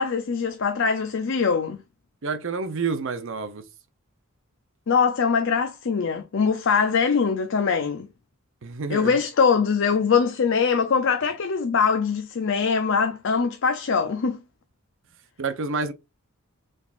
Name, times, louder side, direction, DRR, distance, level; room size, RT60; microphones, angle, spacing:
voice 1, 0.0-1.8 4.9-8.1 8.9-14.4, left 5 dB, 55° left, 0.5 m, -22 dB
voice 2, 2.2-3.6 8.6-9.1 15.4-15.9, right 4 dB, 55° right, 0.6 m, -28 dB
5.0 x 3.5 x 2.4 m
head